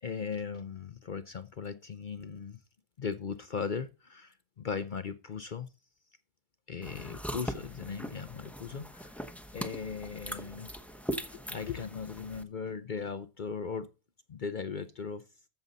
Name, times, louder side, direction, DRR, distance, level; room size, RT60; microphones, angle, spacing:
voice 1, 0.0-2.6 3.0-5.7 6.7-9.2 9.5-10.7 11.2-13.9 14.3-15.2, left 6 dB, 55° left, 0.5 m, -38 dB
sound 1, 6.8-12.4, equal, ahead, 0.6 m, -40 dB
14.0 x 6.9 x 4.0 m
omnidirectional pair, 1.5 m